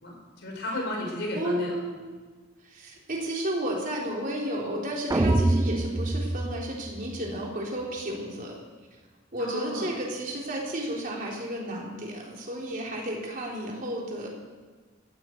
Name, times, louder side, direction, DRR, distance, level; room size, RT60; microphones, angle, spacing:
voice 1, 0.0-1.8 9.4-9.9, left 1 dB, 60° left, -1 dB, 5.3 m, -33 dB
voice 2, 1.3-2.2 2.6-8.6 9.3-14.3, right 1 dB, 45° right, -2 dB, 3.8 m, -32 dB
sound 1, 5.1-7.4, right 2 dB, 15° right, 0.4 m, -25 dB
19.5 x 15.5 x 4.7 m, 1.4 s
head